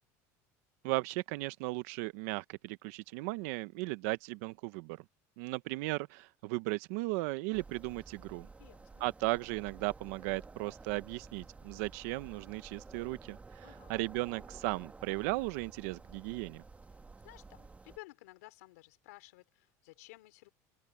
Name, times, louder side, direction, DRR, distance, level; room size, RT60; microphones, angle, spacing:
voice 1, 0.8-5.0 5.4-8.5 9.0-13.6 13.9-16.6, right 22 dB, 75° right, 0.9 m, -36 dB
sound 1, 7.5-18.0, right 3 dB, 15° right, 2.2 m, -52 dB
voice 2, 8.6-9.0 13.6-14.0 16.9-20.5, left 21 dB, 85° left, 3.9 m, -55 dB
supercardioid pair, 105°, 8 cm